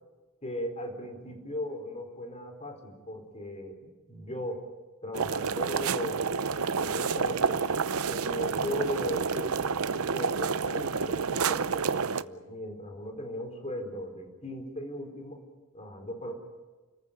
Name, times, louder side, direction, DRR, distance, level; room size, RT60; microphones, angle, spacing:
voice 1, 0.4-4.6 5.0-7.6 8.1-15.4 15.7-16.3, equal, 30° left, 4 dB, 4.5 m, -38 dB
sound 1, 5.1-12.2, right 5 dB, 85° right, 0.7 m, -29 dB
29.5 x 14.5 x 9.3 m, 1.2 s
head